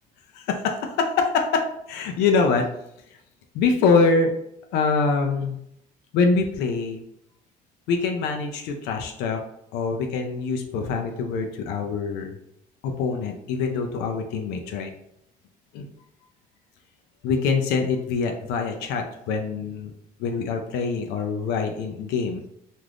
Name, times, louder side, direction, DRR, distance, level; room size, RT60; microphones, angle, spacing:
voice 1, 0.3-2.7 3.5-4.3 4.7-5.6 6.1-7.0 7.9-9.4 9.7-12.3 12.8-14.9 15.7-15.9 17.2-19.9 20.2-22.4, left 4 dB, 90° left, 3 dB, 0.4 m, -24 dB
3.3 x 2.5 x 2.4 m, 0.76 s
cardioid pair, 110°, 17 cm